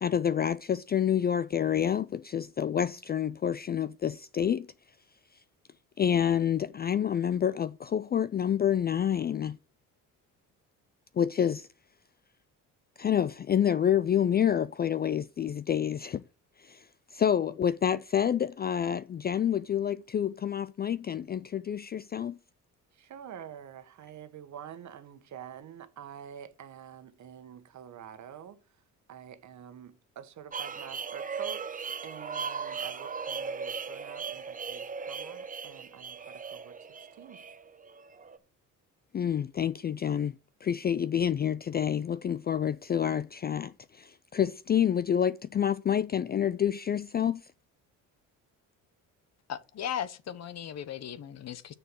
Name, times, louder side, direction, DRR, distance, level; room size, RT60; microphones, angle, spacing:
voice 1, 0.0-4.7 6.0-9.6 11.2-11.7 13.0-16.2 16.6-16.8 17.1-22.4 39.1-47.4, left 9 dB, 30° left, 0.4 m, -28 dB
voice 2, 22.9-28.6 29.1-37.4, right 9 dB, 55° right, 1.4 m, -47 dB
sound 1, 30.5-38.4, right 5 dB, 25° right, 0.9 m, -38 dB
voice 3, 49.5-51.7, left 9 dB, 50° left, 1.0 m, -37 dB
6.9 x 6.7 x 6.3 m
cardioid pair, 95°, 33 cm